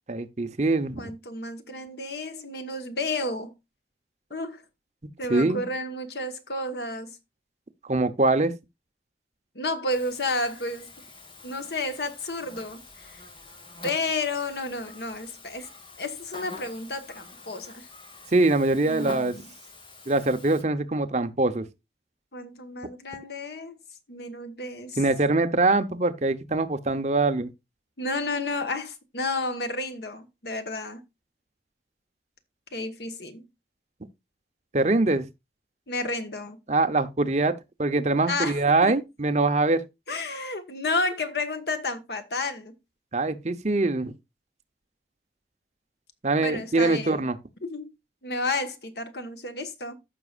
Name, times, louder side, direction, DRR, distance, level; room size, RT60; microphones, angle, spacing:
voice 1, 0.1-1.1 5.3-5.7 7.9-8.5 18.3-19.3 20.1-21.7 25.0-27.5 34.7-35.3 36.7-39.8 43.1-44.1 46.2-47.4, right 2 dB, 40° right, 0.9 m, -23 dB
voice 2, 1.0-3.5 4.3-4.6 5.2-7.2 9.5-10.9 11.4-13.2 13.8-15.7 16.0-17.9 18.8-19.5 22.3-23.8 24.1-25.0 28.0-31.0 32.7-33.4 35.9-36.6 38.3-38.9 40.1-42.7 46.4-47.3 47.6-47.9 48.2-50.0, left 2 dB, 70° left, 1.5 m, -31 dB
Buzz, 9.9-20.6, left 3 dB, 30° left, 1.7 m, -46 dB
14.5 x 6.1 x 2.5 m
head